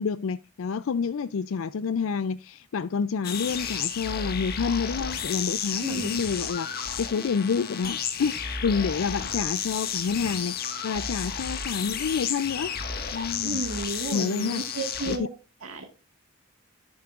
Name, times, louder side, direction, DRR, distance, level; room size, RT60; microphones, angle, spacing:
voice 1, 0.0-12.7 13.1-13.6 14.1-14.6 15.1-15.2, left 5 dB, 75° left, 0.4 m, -28 dB
sound 1, 3.2-15.2, left 7 dB, 45° left, 1.5 m, -32 dB
voice 2, 5.8-6.2 13.4-15.3 15.6-15.8, right 2 dB, 80° right, 1.7 m, -32 dB
11.5 x 10.5 x 2.4 m
head